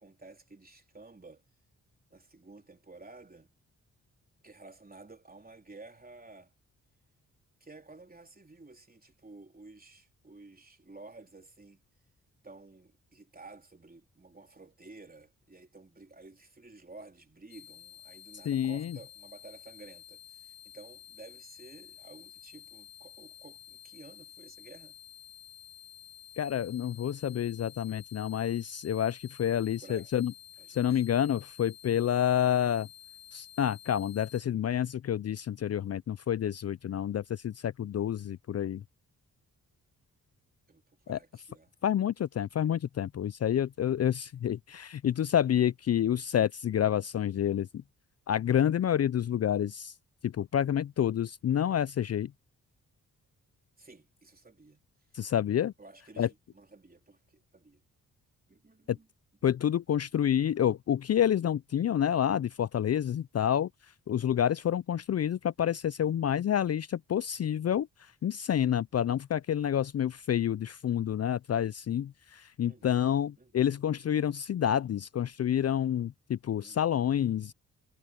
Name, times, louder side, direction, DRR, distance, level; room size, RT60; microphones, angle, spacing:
voice 1, 0.0-1.4 2.1-3.5 4.4-6.5 7.6-11.8 12.4-25.0 29.5-30.2 30.6-31.0 40.7-41.7 53.8-54.8 55.8-57.8 58.5-59.1 59.9-60.0 66.0-66.5 72.6-73.9 76.6-77.2, right 3 dB, 25° right, 3.5 m, -53 dB
sound 1, 17.5-34.4, left 11 dB, 90° left, 1.4 m, -52 dB
voice 2, 18.5-19.0 26.4-30.3 30.7-32.9 33.3-38.8 41.1-41.2 41.8-47.8 48.3-49.9 50.2-52.3 55.1-55.7 56.2-56.3 58.9-59.0 59.4-63.7 64.1-77.5, left 10 dB, 45° left, 0.5 m, -28 dB
supercardioid pair, 50°, 35 cm